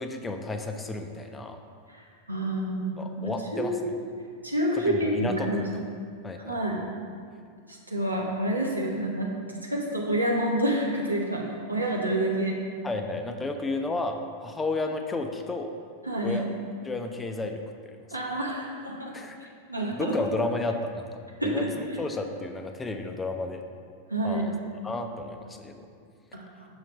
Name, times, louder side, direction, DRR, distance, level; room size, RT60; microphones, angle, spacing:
voice 1, 0.0-1.6 3.0-3.7 4.7-5.7 6.2-6.6 12.8-15.7 16.2-16.4 16.8-18.0 19.1-19.5 20.0-21.2 21.5-23.6 24.2-24.5 24.8-25.8, left 2 dB, 15° left, 5 dB, 0.4 m, -32 dB
voice 2, 2.3-3.9 4.4-5.6 6.4-6.8 7.9-9.3 9.7-11.4 11.7-12.6 16.0-16.4 18.1-19.1 19.7-20.2 21.4-21.7 24.1-24.5 26.3-26.4, right 1 dB, 85° right, -2 dB, 0.9 m, -28 dB
6.3 x 3.2 x 5.1 m, 2.3 s
figure-of-eight pair, 90°, 0 cm